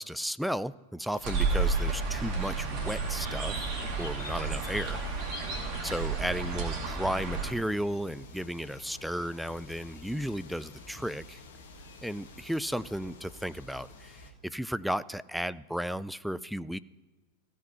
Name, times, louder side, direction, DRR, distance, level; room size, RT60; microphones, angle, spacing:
voice 1, 0.0-3.7 4.0-5.4 5.8-11.4 12.0-16.8, equal, ahead, 16 dB, 0.3 m, -34 dB
sound 1, 1.1-14.3, left 3 dB, 55° left, 1.5 m, -49 dB
sound 2, 1.2-7.5, right 4 dB, 40° right, 2.3 m, -31 dB
16.0 x 5.4 x 5.5 m, 1.3 s
figure-of-eight pair, 90°, 0 cm